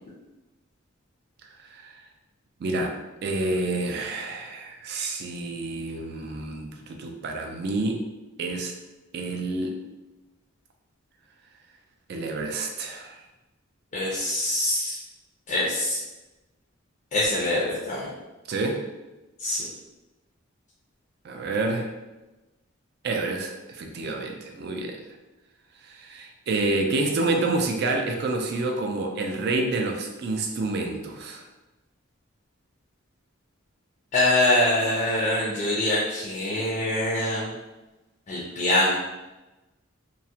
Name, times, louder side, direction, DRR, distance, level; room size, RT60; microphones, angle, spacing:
voice 1, 1.6-2.0 2.6-2.9 3.2-8.0 8.4-8.7 9.1-9.8 12.1-13.2 18.5-18.8 21.2-21.9 23.0-25.0 25.8-31.4, right 2 dB, 50° right, 3 dB, 0.3 m, -28 dB
voice 2, 13.9-15.0 15.5-16.0 17.1-18.1 19.4-19.7 34.1-37.5 38.3-39.0, left 1 dB, 35° left, -6 dB, 0.4 m, -24 dB
2.3 x 2.0 x 2.7 m, 1.1 s
head